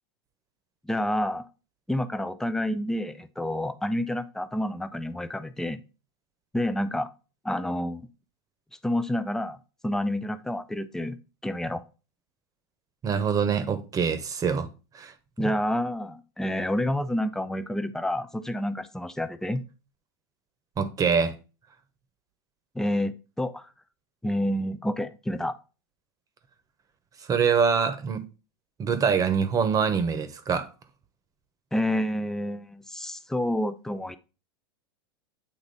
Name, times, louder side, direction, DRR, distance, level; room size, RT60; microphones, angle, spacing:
voice 1, 0.8-1.5 1.9-5.8 6.5-7.1 7.4-8.1 8.8-11.2 11.4-11.8 15.4-19.6 22.7-23.6 24.2-25.5 31.7-34.2, left 1 dB, 5° left, 0.5 m, -29 dB
voice 2, 13.0-14.7 14.9-15.1 20.8-21.3 27.3-28.2 28.8-30.7, right 6 dB, 25° right, 1.0 m, -24 dB
8.6 x 2.9 x 4.1 m
hypercardioid pair, 115°, 13 cm